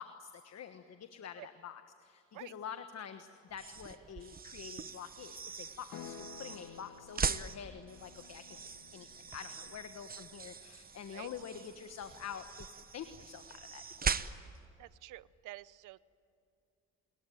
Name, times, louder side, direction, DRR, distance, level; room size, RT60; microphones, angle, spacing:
voice 1, 0.0-8.6 8.9-14.2, left 8 dB, 60° left, 8 dB, 1.4 m, -47 dB
sound 1, 3.5-14.7, right 6 dB, 30° right, 0.9 m, -41 dB
sound 2, 5.9-10.0, left 7 dB, 75° left, 1.7 m, -53 dB
voice 2, 14.8-16.0, right 17 dB, 85° right, 18 dB, 0.7 m, -49 dB
29.0 x 21.5 x 9.3 m, 2.5 s
cardioid pair, 90°, 30 cm